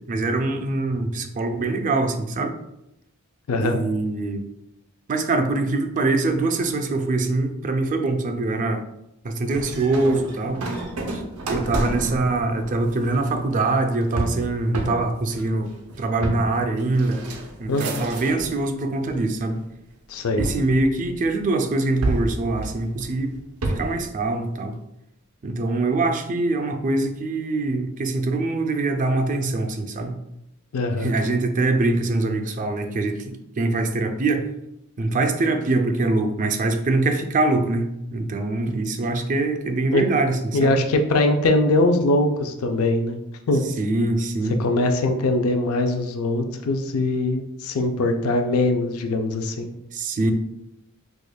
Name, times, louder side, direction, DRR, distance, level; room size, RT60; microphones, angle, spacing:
voice 1, 0.1-2.5 3.6-4.4 5.1-8.8 9.2-10.6 11.1-11.2 11.5-15.7 16.0-17.2 17.6-19.6 20.4-23.3 23.8-24.7 25.4-30.2 31.0-34.4 35.0-40.8 43.8-44.6 49.9-50.3, right 2 dB, 35° right, 6 dB, 0.4 m, -23 dB
voice 2, 3.5-3.8 17.7-18.1 20.1-20.5 30.7-31.2 39.9-40.0 40.5-43.2 43.5-43.6 44.6-49.7, left 2 dB, 75° left, 5 dB, 0.4 m, -22 dB
sound 1, 9.5-18.6 19.0-19.7 20.4-21.5 22.0-24.1, right 2 dB, 90° right, 0.6 m, -30 dB
4.8 x 2.2 x 2.2 m, 0.82 s
head